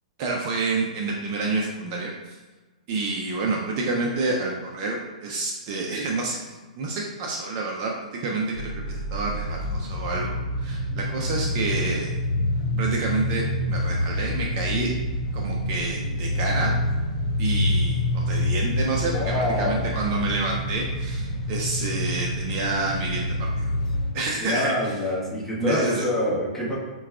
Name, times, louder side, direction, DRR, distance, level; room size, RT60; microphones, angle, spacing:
voice 1, 0.2-2.1 2.9-6.4 6.8-12.2 12.7-14.9 15.3-16.7 17.4-23.3 23.6-23.7 24.1-24.7 25.6-26.0, right 3 dB, 40° right, -1 dB, 0.5 m, -28 dB
sound 1, 8.5-24.1, left 1 dB, 50° left, 1.0 m, -27 dB
voice 2, 19.1-20.1 24.4-26.8, left 1 dB, ahead, -9 dB, 1.1 m, -26 dB
5.7 x 2.3 x 2.3 m, 1.3 s
hypercardioid pair, 130°, 4 cm